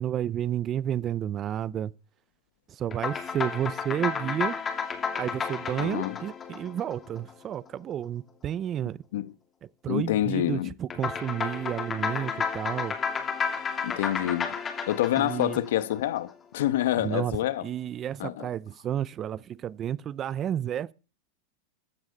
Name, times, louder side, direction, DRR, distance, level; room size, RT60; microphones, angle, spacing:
voice 1, 0.0-1.9 2.8-4.6 5.2-9.0 9.8-12.9 15.2-15.6 17.0-17.4 17.6-20.9, right 10 dB, 30° right, 0.6 m, -31 dB
sound 1, 2.9-7.6 10.9-16.3, left 6 dB, 20° left, 2.6 m, -32 dB
voice 2, 5.8-6.2 9.1-9.3 9.9-10.7 13.8-14.6 14.9-17.7 18.2-18.5, left 13 dB, 75° left, 1.2 m, -27 dB
14.5 x 9.4 x 5.2 m
supercardioid pair, 135°, 0 cm